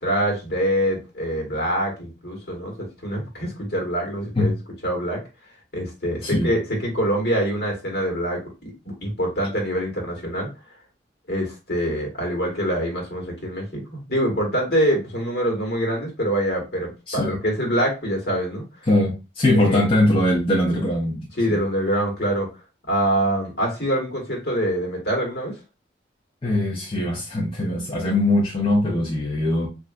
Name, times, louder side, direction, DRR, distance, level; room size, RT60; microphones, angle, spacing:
voice 1, 0.0-4.5 4.8-5.2 5.7-10.5 11.3-18.6 19.5-19.9 21.4-22.5 22.9-25.5, equal, 60° left, 1.3 m, -25 dB
voice 2, 6.2-6.5 17.1-17.4 18.9-21.6 26.4-29.7, left 1 dB, 30° left, 0.6 m, -21 dB
3.3 x 2.5 x 2.4 m
head